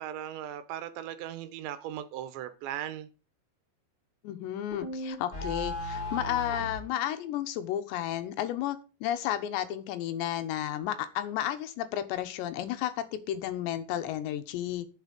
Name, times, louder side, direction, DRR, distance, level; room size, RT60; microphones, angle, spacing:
voice 1, 0.0-3.1, right 11 dB, 90° right, 11 dB, 3.3 m, -38 dB
voice 2, 4.2-14.9, left 12 dB, 85° left, 9 dB, 3.2 m, -32 dB
sound 1, 4.7-6.9, left 1 dB, 40° left, 0.9 m, -35 dB
11.0 x 7.4 x 5.2 m, 0.33 s
omnidirectional pair, 5.0 m